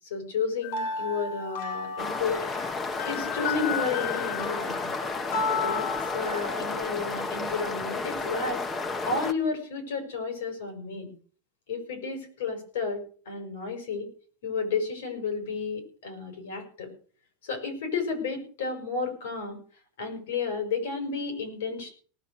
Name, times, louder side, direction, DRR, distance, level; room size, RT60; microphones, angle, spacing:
voice 1, 0.1-2.4 3.0-4.9 5.5-5.9 6.1-8.6 9.0-11.1 11.7-14.1 14.4-16.9 17.4-19.6 20.0-21.9, left 4 dB, 90° left, 6 dB, 5.7 m, -32 dB
sound 1, 0.6-6.8, left 5 dB, 65° left, 2.4 m, -33 dB
sound 2, 2.0-9.3, left 3 dB, 20° left, 0.9 m, -32 dB
18.5 x 6.7 x 6.5 m, 0.42 s
supercardioid pair, 150°, 0 cm